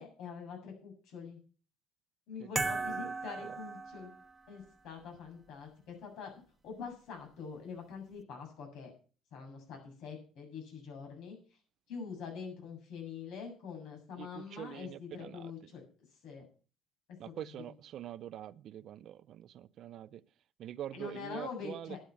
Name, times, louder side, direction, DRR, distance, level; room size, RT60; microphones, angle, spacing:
voice 1, 0.0-1.4 2.3-4.2 4.5-6.3 6.6-8.9 9.3-11.4 11.9-15.8 16.2-16.5 20.9-22.0, left 6 dB, 75° left, 7.3 m, -45 dB
sound 1, 2.5-4.5, right 3 dB, 15° right, 1.2 m, -36 dB
voice 2, 2.8-3.6 14.2-15.5 17.2-20.2 20.6-22.0, right 11 dB, 60° right, 0.6 m, -45 dB
11.5 x 8.8 x 7.1 m
cardioid pair, 115°, 0 cm